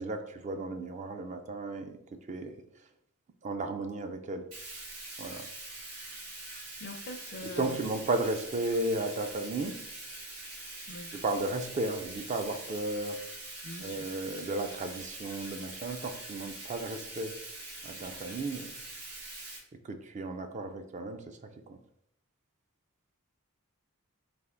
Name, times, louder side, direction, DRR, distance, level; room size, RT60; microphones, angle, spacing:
voice 1, 0.0-2.6 3.4-4.5 5.2-5.5 7.4-9.8 11.1-13.2 13.8-17.3 17.8-18.7 19.8-21.4 21.7-21.8, right 2 dB, 30° right, 7 dB, 0.3 m, -34 dB
Bathtub (filling or washing), 4.5-19.6, right 2 dB, 90° right, 1.5 m, -44 dB
voice 2, 6.8-7.8 10.9-11.2 13.6-14.1, left 1 dB, 50° left, 7 dB, 0.5 m, -43 dB
3.4 x 2.5 x 3.7 m, 0.70 s
head